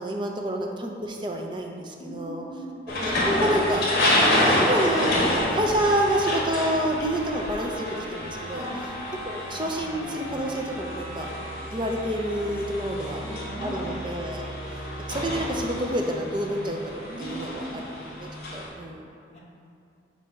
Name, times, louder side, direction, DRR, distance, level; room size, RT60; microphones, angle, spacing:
voice 1, 0.0-2.4 2.9-3.8 4.2-8.7 9.3-11.3 11.7-13.2 13.6-19.1, right 1 dB, 25° right, 1 dB, 0.5 m, -29 dB
voice 2, 2.0-2.8 8.5-8.8 12.7-13.9 17.1-17.8 18.4-18.5 18.7-18.8 19.3-19.4, right 1 dB, 35° left, -5 dB, 1.0 m, -39 dB
sound 1, 2.9-18.7, left 1 dB, 55° left, 1.3 m, -28 dB
sound 2, 8.5-13.6, left 1 dB, 70° right, 1.4 m, -45 dB
7.5 x 2.7 x 5.7 m, 2.6 s
head